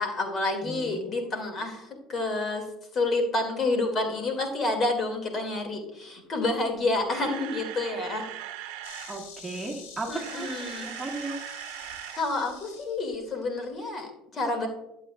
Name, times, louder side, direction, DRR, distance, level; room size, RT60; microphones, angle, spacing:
voice 1, 0.0-2.7 2.9-8.3 10.1-10.9 12.2-14.7, left 2 dB, 40° left, 5 dB, 2.1 m, -29 dB
voice 2, 0.6-1.3 9.1-11.4, right 2 dB, 5° right, -3 dB, 1.6 m, -36 dB
Camera, 6.8-9.2 10.0-12.2 12.5-12.7 13.1-13.2, right 12 dB, 80° right, 0.7 m, -40 dB
Insect, 8.8-13.8, left 5 dB, 85° left, 1.4 m, -47 dB
11.5 x 7.7 x 2.3 m, 0.91 s
supercardioid pair, 95°, 0 cm